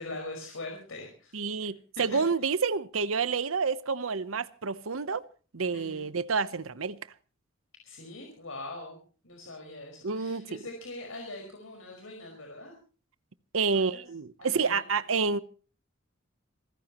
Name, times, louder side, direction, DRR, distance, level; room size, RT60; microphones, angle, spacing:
voice 1, 0.0-1.3 2.0-2.2 5.7-6.1 7.8-9.0 9.2-12.7 13.7-14.0 14.4-14.8, left 2 dB, 85° left, 5.1 m, -42 dB
voice 2, 1.3-5.2 5.5-7.0 10.0-10.6 13.5-15.4, right 5 dB, 90° right, 0.9 m, -29 dB
27.0 x 15.0 x 3.0 m
head